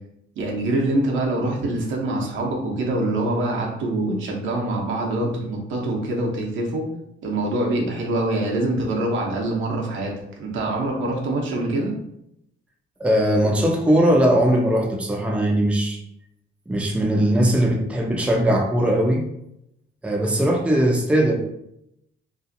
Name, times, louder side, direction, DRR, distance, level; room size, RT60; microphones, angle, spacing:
voice 1, 0.4-6.9 7.2-11.9, right 2 dB, 75° right, -1 dB, 0.8 m, -24 dB
voice 2, 13.0-16.0 16.7-19.3 20.0-21.4, right 1 dB, 5° right, 0 dB, 0.5 m, -19 dB
2.6 x 2.4 x 2.6 m, 0.77 s
cardioid pair, 90°, 20 cm